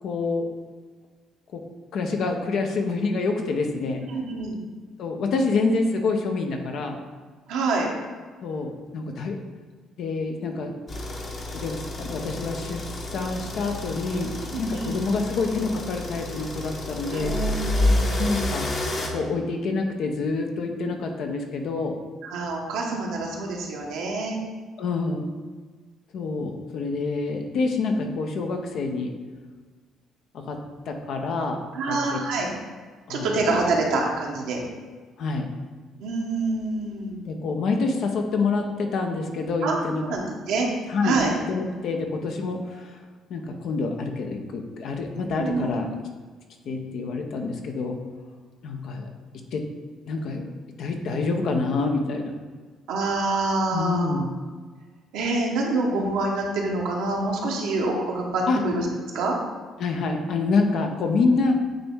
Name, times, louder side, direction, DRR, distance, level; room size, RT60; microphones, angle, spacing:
voice 1, 0.0-0.5 1.5-1.6 1.9-4.0 5.0-7.0 8.4-9.4 10.0-10.8 11.5-17.3 18.2-18.7 19.1-22.0 24.8-25.3 26.1-29.1 30.3-30.6 30.9-31.6 31.9-32.2 33.1-33.3 35.2-35.5 37.3-40.0 40.9-41.2 41.5-43.0 43.3-45.9 46.7-48.0 48.6-49.1 49.5-49.6 50.1-50.5 50.8-52.3 53.7-54.3 58.5-58.6 59.8-61.5, left 3 dB, 65° left, 3 dB, 0.8 m, -27 dB
voice 2, 4.1-4.6 7.5-7.9 14.5-14.9 17.1-18.2 22.2-24.4 31.7-32.5 33.1-34.6 36.0-37.2 39.6-39.8 40.1-40.7 41.0-41.3 45.4-45.8 52.9-54.1 55.1-58.9 59.1-59.3, right 3 dB, 75° right, -1 dB, 1.1 m, -26 dB
sound 1, 10.9-19.1, left 1 dB, 45° left, 1.1 m, -29 dB
8.8 x 3.0 x 3.6 m, 1.4 s
hypercardioid pair, 60°, 0 cm